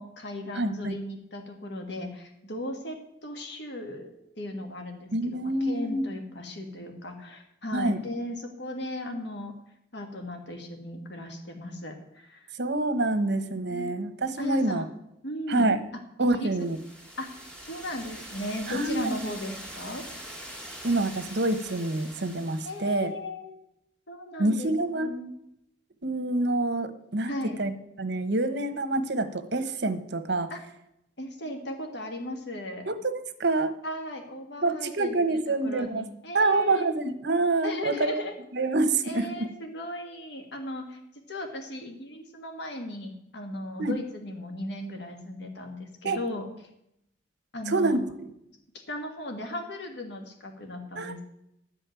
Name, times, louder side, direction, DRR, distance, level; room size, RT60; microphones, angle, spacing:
voice 1, 0.0-9.5 9.9-12.5 13.7-14.0 14.4-14.9 15.2-15.7 16.2-16.5 17.2-17.3 17.6-20.1 22.6-23.6 24.1-24.7 25.0-25.3 27.3-27.6 30.5-30.6 31.2-32.9 33.8-35.2 35.5-36.8 37.6-38.3 39.0-41.0 41.3-46.5 47.5-48.1 48.9-51.2, left 1 dB, 65° left, 4 dB, 1.8 m, -36 dB
voice 2, 0.5-1.0 5.1-6.0 7.7-8.0 12.6-14.8 15.5-15.8 16.2-16.8 18.7-19.1 20.8-23.1 24.4-25.2 26.0-27.3 27.6-27.7 28.0-30.5 32.9-33.8 34.6-36.1 36.3-38.2 38.5-39.5 43.8-44.0 46.0-46.2 47.7-48.0 51.0-51.2, right 2 dB, 65° right, 10 dB, 1.2 m, -27 dB
sound 1, 16.5-23.0, right 1 dB, 5° left, 2.4 m, -43 dB
12.5 x 5.4 x 9.0 m, 0.79 s
head